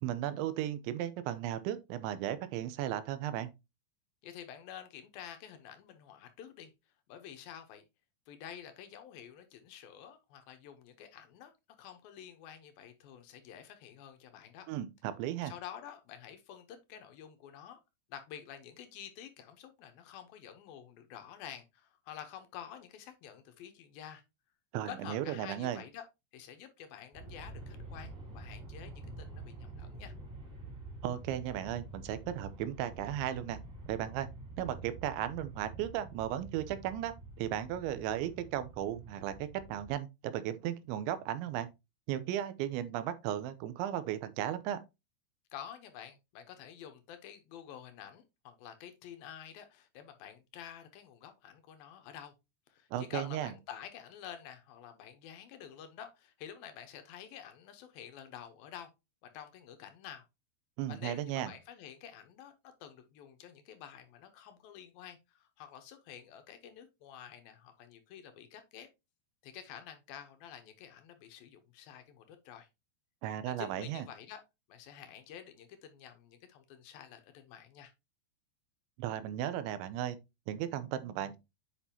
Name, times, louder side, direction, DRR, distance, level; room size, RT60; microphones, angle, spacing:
voice 1, 0.0-3.5 14.7-15.5 24.7-25.8 31.0-33.6 33.9-34.3 34.6-41.7 42.1-44.8 52.9-53.5 60.8-61.5 73.2-74.0 79.0-80.2 80.5-81.4, right 11 dB, 90° right, 3.1 m, -35 dB
voice 2, 4.2-6.7 7.1-7.9 8.3-11.5 11.8-14.7 15.4-17.8 18.1-24.2 24.9-26.1 26.3-30.1 45.5-52.3 52.7-58.9 59.2-60.3 60.9-68.9 69.4-72.7 73.4-74.4 74.7-77.9, left 9 dB, 70° left, 2.4 m, -49 dB
Aircraft, 27.1-39.9, right 2 dB, 15° right, 2.6 m, -48 dB
8.6 x 5.5 x 2.8 m
omnidirectional pair, 5.1 m